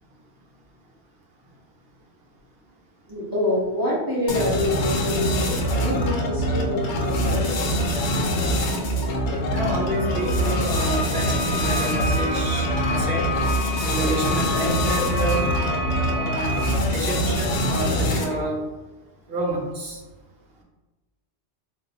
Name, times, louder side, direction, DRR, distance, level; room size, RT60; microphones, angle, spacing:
voice 1, 3.1-5.5 5.7-7.5, left 1 dB, 20° right, -8 dB, 1.0 m, -26 dB
sound 1, 4.3-18.5, equal, 85° left, 0.9 m, -24 dB
voice 2, 9.5-13.3 13.8-15.6 16.1-16.6 16.9-18.6 19.3-20.0, right 1 dB, 65° right, -1 dB, 0.9 m, -29 dB
sound 2, 9.8-16.8, left 2 dB, 60° left, 0.4 m, -30 dB
3.6 x 2.1 x 2.8 m, 1.2 s
omnidirectional pair, 1.1 m